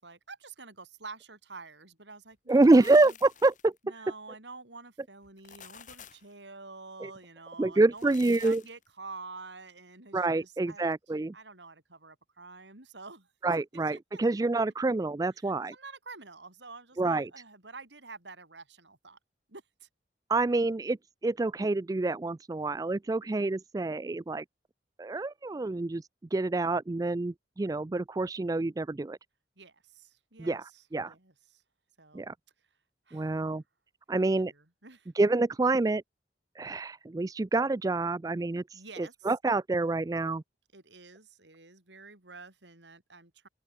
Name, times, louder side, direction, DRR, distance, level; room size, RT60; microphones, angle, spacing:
voice 1, 0.0-3.2 3.8-10.9 11.3-14.2 15.4-19.2 19.5-19.9 29.6-31.6 32.0-32.3 33.1-33.3 34.1-35.1 38.7-39.3 40.7-43.5, right 3 dB, 85° right, 5.6 m, -48 dB
sound 1, 2.3-3.8 5.2-6.3 7.8-8.9, left 8 dB, 45° left, 3.3 m, -51 dB
voice 2, 2.5-3.7 7.0-7.1 7.6-8.6 10.1-11.3 13.4-15.7 17.0-17.3 20.3-21.0 21.2-24.4 25.0-26.0 26.3-29.2 30.4-30.6 30.9-31.1 32.1-32.3 33.1-33.6 34.1-34.5 35.2-36.0 36.6-40.4, right 2 dB, 20° right, 0.3 m, -27 dB
open air
head